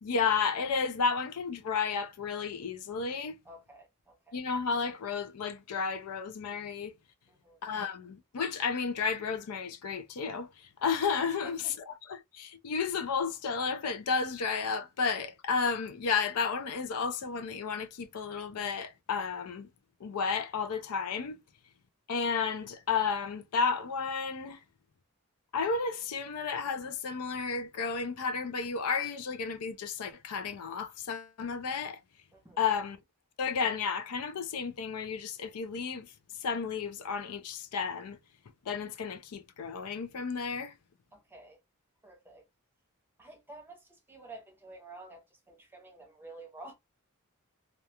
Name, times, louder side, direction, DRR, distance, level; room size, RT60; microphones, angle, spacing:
voice 1, 0.0-3.3 4.3-6.9 7.6-19.7 20.0-21.4 22.1-24.6 25.5-32.0 32.6-33.0 33.4-36.1 36.4-38.2 38.6-40.7, left 5 dB, 85° left, 0.5 m, -32 dB
voice 2, 3.5-4.4 7.3-7.6 11.4-11.7 32.3-32.6 41.1-41.6 42.0-42.4 43.2-46.7, right 2 dB, 10° right, 0.7 m, -50 dB
2.4 x 2.2 x 2.7 m
head